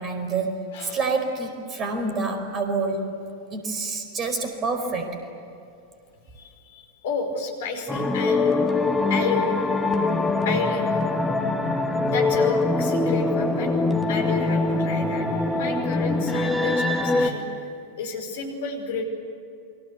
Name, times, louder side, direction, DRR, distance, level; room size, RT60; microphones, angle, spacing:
voice 1, 0.0-3.1 3.5-5.2, right 3 dB, 25° right, 6 dB, 4.9 m, -27 dB
voice 2, 6.4-8.6 9.1-9.5 10.5-10.9 12.1-13.8 14.1-17.5 18.0-19.0, left 4 dB, 55° left, 4 dB, 5.2 m, -31 dB
sound 1, 7.9-17.3, left 3 dB, 10° left, 2.4 m, -23 dB
29.0 x 24.5 x 8.3 m, 2.6 s
figure-of-eight pair, 90°, 0 cm